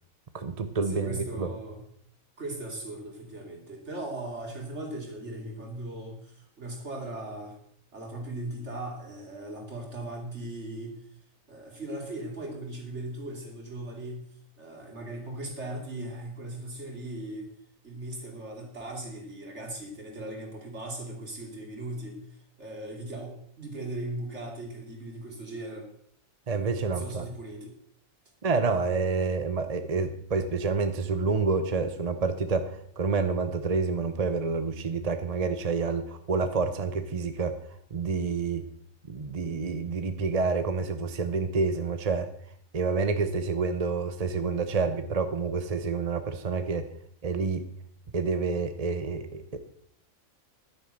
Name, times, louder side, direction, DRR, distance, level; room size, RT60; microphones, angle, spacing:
voice 1, 0.3-1.5 26.5-27.2 28.4-37.6 37.9-38.6 39.1-42.3 42.7-46.9 47.2-47.6 48.1-49.6, right 4 dB, 35° right, 9 dB, 0.8 m, -28 dB
voice 2, 0.9-1.9 2.4-7.6 7.9-11.0 11.5-14.3 14.6-17.5 17.8-22.2 22.6-25.9 26.9-27.7, right 1 dB, 55° right, 1 dB, 3.1 m, -38 dB
11.0 x 9.7 x 6.5 m, 0.66 s
omnidirectional pair, 1.4 m